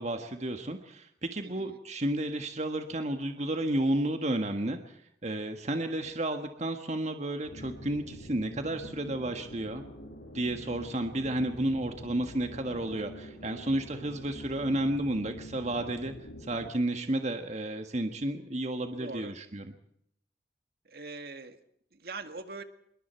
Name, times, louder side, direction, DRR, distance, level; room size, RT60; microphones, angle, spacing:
voice 1, 0.0-9.8 10.3-16.1 16.4-19.7, right 1 dB, 40° right, 6 dB, 1.6 m, -32 dB
voice 2, 1.4-1.8 18.9-19.4 20.9-21.6 21.9-22.6, right 3 dB, 60° right, 8 dB, 2.0 m, -42 dB
sound 1, 7.4-16.7, equal, 85° left, 6.4 m, -46 dB
26.5 x 22.5 x 4.6 m, 0.72 s
head